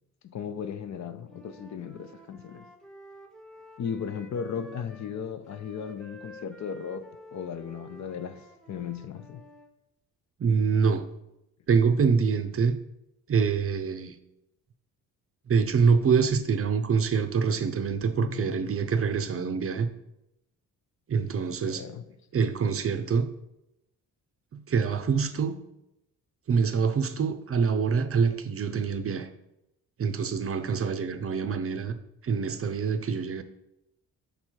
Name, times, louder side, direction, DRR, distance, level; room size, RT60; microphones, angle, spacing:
voice 1, 0.3-2.7 3.8-9.5 18.2-18.6 21.5-22.0, left 7 dB, 50° left, 0.6 m, -36 dB
Wind instrument woodwind instrument, 1.3-5.2 5.5-9.7, equal, ahead, 0.7 m, -50 dB
voice 2, 10.4-11.1 11.7-12.8 13.3-14.2 15.5-19.9 21.1-21.8 22.3-23.3 24.5-25.6 26.5-29.3 30.0-31.9 32.2-33.4, right 5 dB, 40° right, 0.6 m, -25 dB
5.3 x 4.3 x 4.5 m
cardioid pair, 70°, 37 cm